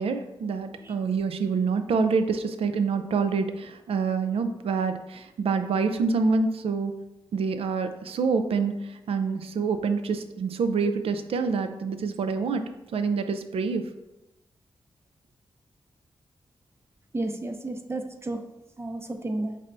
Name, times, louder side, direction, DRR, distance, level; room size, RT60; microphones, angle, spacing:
voice 1, 0.0-6.9 7.3-12.6 12.9-13.8, right 5 dB, 80° right, 9 dB, 0.4 m, -26 dB
voice 2, 17.1-18.4 18.8-19.6, right 2 dB, 25° right, 6 dB, 0.5 m, -32 dB
5.3 x 3.3 x 2.6 m, 0.96 s
cardioid pair, 75°, 10 cm